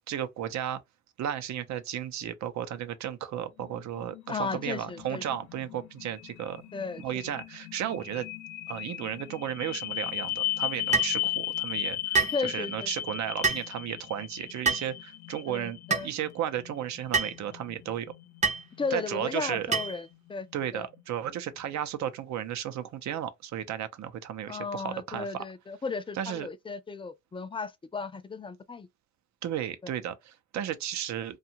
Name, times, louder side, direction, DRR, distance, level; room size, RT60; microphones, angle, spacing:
voice 1, 0.1-0.8 1.2-6.6 7.0-8.3 8.7-18.1 18.9-19.7 20.5-25.4 26.1-26.5 29.4-31.4, right 10 dB, 65° right, 0.6 m, -34 dB
sound 1, 3.6-21.6, left 13 dB, 70° left, 0.5 m, -37 dB
voice 2, 4.3-5.2 6.7-7.0 12.3-12.9 15.5-16.1 18.8-20.5 20.7-20.9 24.5-28.9 29.8-29.9, left 4 dB, 20° left, 0.4 m, -35 dB
sound 2, 10.9-11.2 12.1-12.4 13.4-13.7 14.6-14.9 15.9-16.1 17.1-17.4 18.4-18.6 19.7-20.0, right 4 dB, 25° right, 0.6 m, -26 dB
2.7 x 2.3 x 2.7 m
cardioid pair, 90°, 30 cm